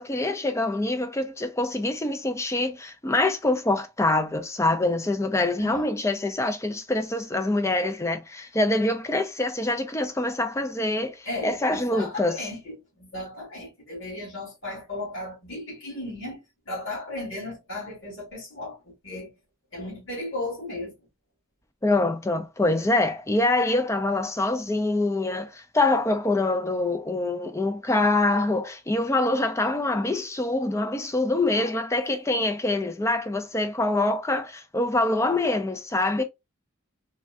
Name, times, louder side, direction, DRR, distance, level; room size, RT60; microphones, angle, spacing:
voice 1, 0.0-12.4 21.8-36.2, left 2 dB, 15° left, 0.4 m, -25 dB
voice 2, 5.6-5.9 11.3-16.4 16.7-19.3 19.7-20.9 31.5-31.7, left 2 dB, 60° left, 2.0 m, -35 dB
3.3 x 2.3 x 2.4 m
head